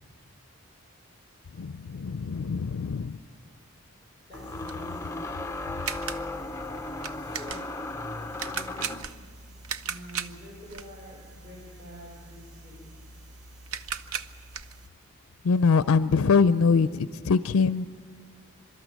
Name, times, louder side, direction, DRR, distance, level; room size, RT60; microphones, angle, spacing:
voice 1, 1.6-3.2 15.4-17.9, left 5 dB, 70° left, 14 dB, 0.4 m, -23 dB
sound 1, 2.4-2.5 4.3-9.2, left 2 dB, 10° left, 0.5 m, -36 dB
voice 2, 4.3-5.3 7.1-7.8 8.2-9.0 9.8-12.9, equal, 25° right, -4 dB, 4.5 m, -47 dB
sound 2, 4.3-14.9, right 6 dB, 75° right, 0.7 m, -39 dB
24.0 x 13.0 x 9.1 m, 2.3 s
head